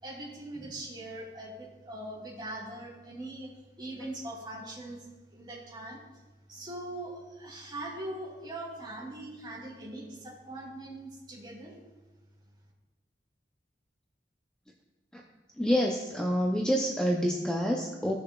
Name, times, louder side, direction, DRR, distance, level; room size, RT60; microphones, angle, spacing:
voice 1, 0.0-3.5 3.8-6.0 6.5-11.7, right 1 dB, 25° right, -6 dB, 2.7 m, -41 dB
voice 2, 15.6-18.2, equal, 5° left, -1 dB, 0.5 m, -27 dB
16.0 x 6.6 x 2.3 m, 1.2 s
head